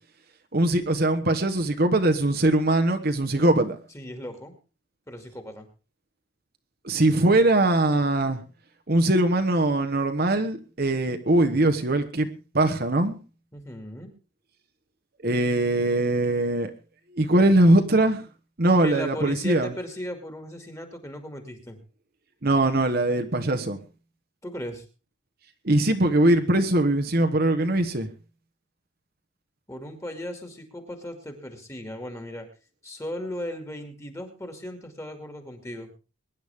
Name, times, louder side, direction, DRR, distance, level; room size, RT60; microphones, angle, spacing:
voice 1, 0.5-3.8 6.8-8.4 8.9-13.2 15.2-16.7 17.1-18.2 18.6-19.7 22.4-23.8 25.6-28.1, right 1 dB, 45° right, 7 dB, 1.2 m, -21 dB
voice 2, 3.9-4.5 5.1-5.7 13.5-14.1 18.8-21.8 24.4-24.8 29.7-32.5 32.8-35.9, equal, 15° left, 5 dB, 2.3 m, -37 dB
22.5 x 10.5 x 3.6 m, 0.33 s
head